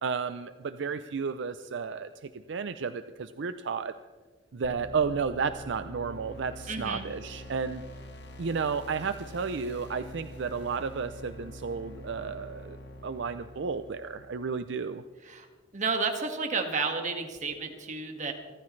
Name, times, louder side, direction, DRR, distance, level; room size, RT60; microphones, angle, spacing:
voice 1, 0.0-3.9 4.5-7.8 8.4-12.8 13.0-15.0, right 5 dB, 70° right, 11 dB, 0.5 m, -32 dB
sound 1, 4.6-14.5, equal, 60° left, 1.4 m, -45 dB
voice 2, 6.7-7.1 15.2-15.5 15.7-18.3, right 4 dB, 40° right, 4 dB, 1.9 m, -31 dB
27.0 x 13.5 x 3.3 m, 1.4 s
head